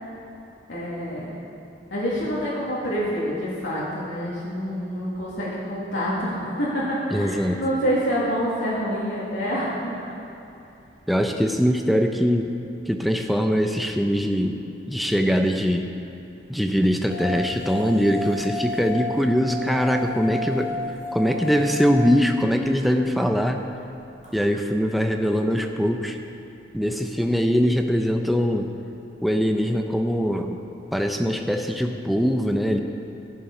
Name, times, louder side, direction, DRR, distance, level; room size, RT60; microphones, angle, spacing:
voice 1, 0.7-1.3 1.9-9.9, equal, 90° left, -8 dB, 2.3 m, -27 dB
voice 2, 7.1-7.6 11.1-12.5 12.9-14.6 14.9-15.9 16.5-20.7 21.1-23.6 24.3-26.2 26.7-28.7 29.2-30.6 30.9-32.8, equal, ahead, 4 dB, 0.6 m, -22 dB
sound 1, 17.1-23.2 24.2-24.4, left 2 dB, 40° right, 2.2 m, -32 dB
14.5 x 7.4 x 5.5 m, 2.8 s
head